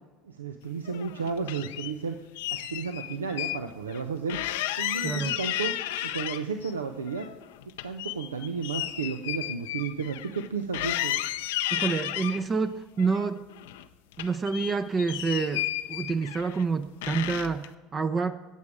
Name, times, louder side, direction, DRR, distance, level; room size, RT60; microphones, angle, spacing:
voice 1, 0.2-2.2 2.5-4.4 4.8-5.8 6.0-7.3 7.8-11.2, right 5 dB, 85° right, 7 dB, 0.6 m, -33 dB
sound 1, 0.9-1.9 2.4-3.6 3.9-4.0 4.3-6.7 7.1-10.5 10.7-12.4 13.0-13.9 14.1-16.6 17.0-17.7, left 13 dB, 70° left, 0.5 m, -33 dB
voice 2, 5.0-5.4 11.7-13.4 14.2-18.4, right 4 dB, 30° right, 10 dB, 0.6 m, -28 dB
17.5 x 7.2 x 4.8 m, 1.2 s
hypercardioid pair, 75°, 0 cm